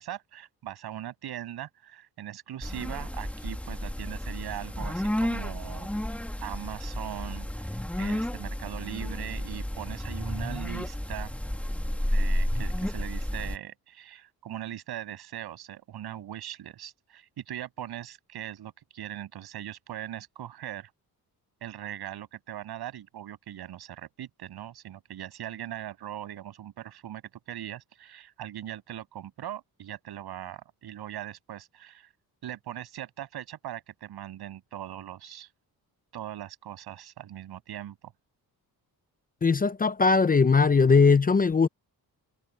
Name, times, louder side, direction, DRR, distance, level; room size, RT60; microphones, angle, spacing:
voice 1, 0.0-5.9 6.4-11.4 12.0-20.9 21.6-27.2 27.5-32.1 32.4-35.5 36.1-38.1, right 11 dB, 90° right, 7.9 m, -40 dB
sound 1, 2.6-13.6, left 1 dB, 5° left, 1.7 m, -31 dB
voice 2, 39.4-41.7, left 4 dB, 25° left, 0.6 m, -20 dB
cardioid pair, 115°, 37 cm